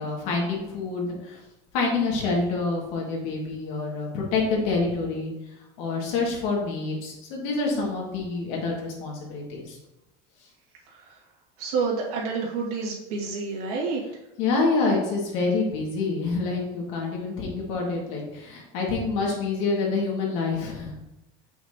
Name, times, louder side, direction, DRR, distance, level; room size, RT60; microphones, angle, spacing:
voice 1, 0.0-1.4 1.7-5.3 5.8-9.8 14.4-20.9, left 3 dB, 60° left, -2 dB, 2.1 m, -27 dB
voice 2, 11.6-14.0, right 4 dB, 75° right, -2 dB, 2.1 m, -29 dB
7.2 x 5.9 x 2.9 m, 0.92 s
cardioid pair, 175°, 19 cm